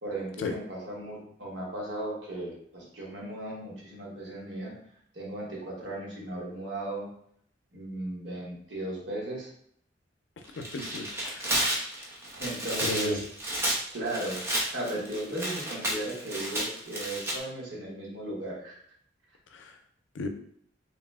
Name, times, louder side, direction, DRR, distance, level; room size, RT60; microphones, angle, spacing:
voice 1, 0.0-4.7 5.1-7.1 7.7-9.5 11.5-11.7 12.3-13.2 13.9-14.4 14.7-18.8, right 1 dB, 80° right, -3 dB, 1.2 m, -36 dB
Tearing, 10.5-17.4, right 1 dB, 15° right, 0.6 m, -32 dB
voice 2, 10.6-11.5 12.9-13.2 19.5-19.7 20.1-20.3, left 3 dB, 85° left, 6 dB, 0.4 m, -34 dB
2.9 x 2.0 x 3.4 m, 0.65 s
head